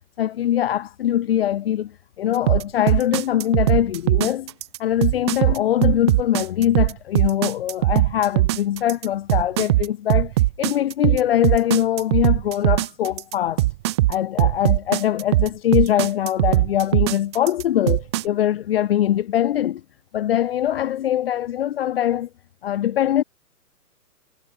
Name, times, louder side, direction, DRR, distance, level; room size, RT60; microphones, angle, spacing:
voice 1, 0.2-4.5 4.8-13.7 14.1-19.8 20.1-22.3 22.6-23.2, left 11 dB, 40° left, 0.8 m, -22 dB
sound 1, 2.5-18.2, right 17 dB, 20° right, 0.7 m, -20 dB
hypercardioid pair, 150°, 47 cm